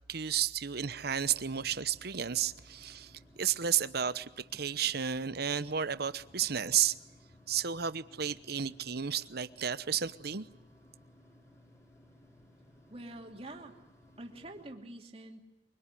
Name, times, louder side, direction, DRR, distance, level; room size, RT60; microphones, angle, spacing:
voice 1, 0.1-6.9 7.5-10.4, right 8 dB, 55° right, 0.9 m, -32 dB
sound 1, 0.9-14.7, left 1 dB, 15° left, 3.5 m, -60 dB
voice 2, 12.9-13.8 14.2-15.4, right 1 dB, 35° right, 2.8 m, -46 dB
24.5 x 24.0 x 10.0 m
head